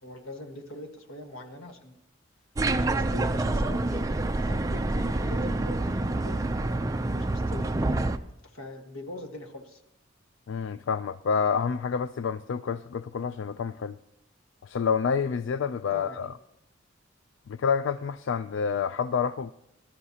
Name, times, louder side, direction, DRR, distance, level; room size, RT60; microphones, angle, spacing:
voice 1, 0.0-2.0 2.8-4.0 4.4-7.7 8.5-9.8 15.9-16.4, left 1 dB, 85° left, 5 dB, 1.5 m, -43 dB
sound 1, 2.6-8.2, right 2 dB, 15° right, 0.4 m, -27 dB
voice 2, 10.5-14.0 14.6-16.3 17.5-19.5, left 6 dB, 65° left, 13 dB, 0.3 m, -28 dB
19.5 x 12.0 x 2.8 m, 0.81 s
head